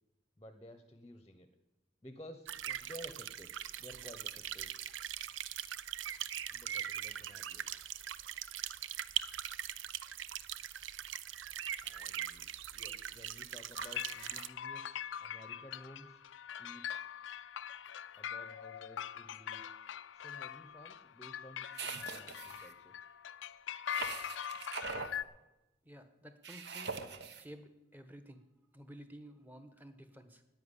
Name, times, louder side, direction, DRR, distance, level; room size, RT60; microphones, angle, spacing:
voice 1, 0.4-1.5 2.0-4.7 6.5-7.8 11.8-16.2 16.6-17.1 18.2-19.7 20.1-22.9, equal, 20° left, 8 dB, 0.8 m, -54 dB
sound 1, 2.4-14.5, right 10 dB, 85° right, 0.5 m, -41 dB
sound 2, 13.8-25.2, left 9 dB, 80° left, 0.4 m, -43 dB
sound 3, 21.7-22.7 23.9-25.2 26.4-27.4, right 4 dB, 60° right, 1.0 m, -42 dB
voice 2, 25.8-27.0 27.4-28.4 28.7-30.4, equal, 10° right, 9 dB, 1.1 m, -53 dB
10.5 x 9.2 x 9.8 m, 0.99 s
head